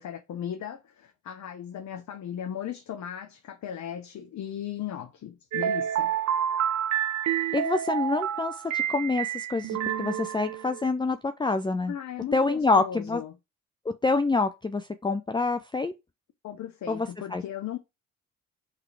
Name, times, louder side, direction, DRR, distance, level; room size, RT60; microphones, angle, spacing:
voice 1, 0.0-6.1 11.9-13.4 16.4-17.8, left 9 dB, 45° left, 0.9 m, -37 dB
sound 1, 5.5-10.8, right 10 dB, 45° right, 0.7 m, -29 dB
voice 2, 7.5-11.9 12.3-13.2 13.9-15.9 16.9-17.4, left 3 dB, 10° left, 0.6 m, -27 dB
6.5 x 3.5 x 4.8 m
figure-of-eight pair, 40°, 39 cm